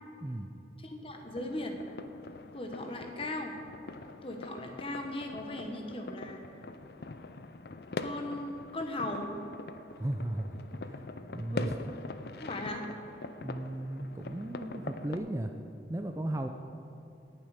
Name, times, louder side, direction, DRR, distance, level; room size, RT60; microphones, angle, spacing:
voice 1, 0.2-0.5 10.0-11.8 12.0-12.1 13.4-15.5 15.9-16.5, right 1 dB, 15° right, 5 dB, 0.4 m, -36 dB
voice 2, 0.8-1.8 2.5-3.5 4.2-6.5 8.0-9.3 11.5-11.7 12.4-12.8, left 1 dB, 30° left, 3 dB, 1.2 m, -38 dB
sound 1, 1.1-15.2, left 3 dB, 60° left, 0.5 m, -43 dB
18.0 x 7.4 x 5.0 m, 2.7 s
head